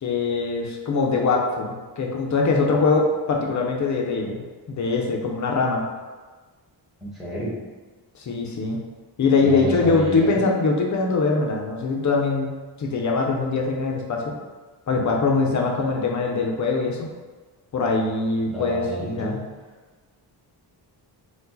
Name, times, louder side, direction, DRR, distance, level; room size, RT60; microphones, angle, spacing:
voice 1, 0.0-5.8 8.1-8.8 9.2-14.3 14.9-17.1 17.7-19.4, left 3 dB, 40° left, 0 dB, 0.6 m, -23 dB
voice 2, 7.0-7.5 9.4-10.4 18.5-19.3, equal, ahead, -8 dB, 1.2 m, -30 dB
4.6 x 2.4 x 3.9 m, 1.3 s
wide cardioid pair, 175°, 44 cm